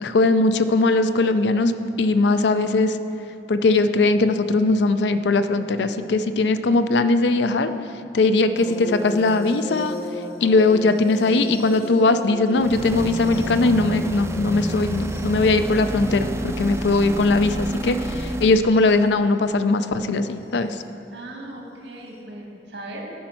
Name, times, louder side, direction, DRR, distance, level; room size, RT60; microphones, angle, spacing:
voice 1, 0.0-1.7 2.0-3.0 3.5-7.7 8.1-10.0 10.4-20.8, left 3 dB, 75° left, 10 dB, 0.4 m, -20 dB
sound 1, 8.5-17.2 18.5-18.8 20.5-20.6, left 1 dB, 60° left, 1.2 m, -37 dB
sound 2, 12.5-18.6, right 1 dB, 15° right, 0.4 m, -29 dB
voice 2, 21.1-23.0, right 1 dB, 85° right, -1 dB, 1.7 m, -38 dB
10.0 x 5.3 x 5.7 m, 2.8 s
head